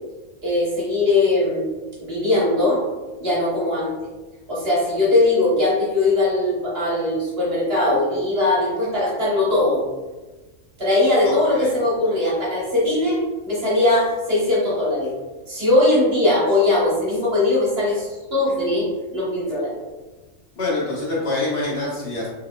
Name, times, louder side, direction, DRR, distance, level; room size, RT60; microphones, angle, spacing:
voice 1, 0.4-1.7 2.0-2.8 3.2-3.9 4.5-9.8 10.8-13.2 13.5-15.1 15.5-18.9 19.1-19.8, left 2 dB, 50° right, -6 dB, 1.4 m, -20 dB
voice 2, 20.5-22.3, left 2 dB, 50° left, -6 dB, 1.2 m, -25 dB
4.1 x 3.1 x 2.2 m, 1.2 s
omnidirectional pair, 1.3 m